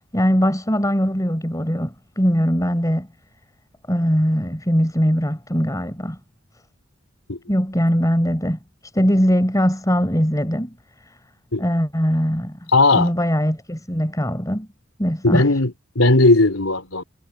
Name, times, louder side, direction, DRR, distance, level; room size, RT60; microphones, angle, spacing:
voice 1, 0.1-3.1 3.9-6.2 7.5-8.6 8.9-10.7 11.6-12.6 12.9-14.7 15.0-15.5, equal, 15° left, 4.2 m, -20 dB
voice 2, 12.7-13.1 15.2-17.0, left 2 dB, 85° left, 3.6 m, -17 dB
head